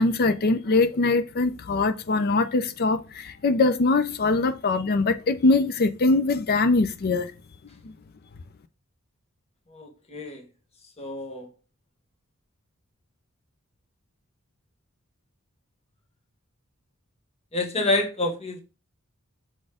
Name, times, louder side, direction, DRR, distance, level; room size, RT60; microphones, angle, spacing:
voice 1, 0.0-7.3 7.8-7.9, left 3 dB, 45° left, 0.5 m, -22 dB
voice 2, 9.7-10.4 11.0-11.5 17.5-18.6, left 2 dB, 30° left, 1.4 m, -28 dB
6.3 x 4.1 x 4.9 m
head